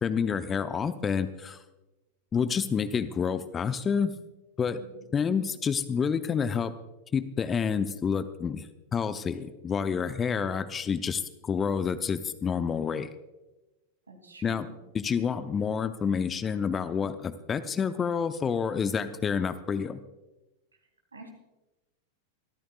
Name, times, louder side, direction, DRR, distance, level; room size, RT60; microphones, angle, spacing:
voice 1, 0.0-1.6 2.3-4.1 4.6-4.8 5.1-6.7 7.1-8.7 8.9-13.1 14.4-14.7 14.9-20.0, left 6 dB, 20° left, 12 dB, 0.7 m, -28 dB
voice 2, 14.1-14.7 21.1-21.3, right 3 dB, 75° right, 2 dB, 3.0 m, -48 dB
25.0 x 14.0 x 2.4 m, 1.1 s
figure-of-eight pair, 90°, 0 cm